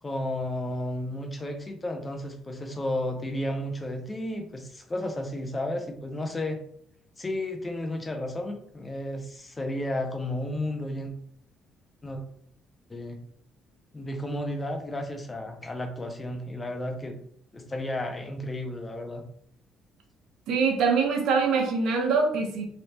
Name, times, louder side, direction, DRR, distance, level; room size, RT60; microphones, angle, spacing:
voice 1, 0.0-6.6 7.2-11.1 12.0-12.2 12.9-13.2 13.9-17.2 17.5-19.2, left 1 dB, 20° left, 4 dB, 0.6 m, -33 dB
voice 2, 20.5-22.7, right 5 dB, 75° right, 2 dB, 0.9 m, -24 dB
3.2 x 2.9 x 2.8 m, 0.64 s
cardioid pair, 105°, 0 cm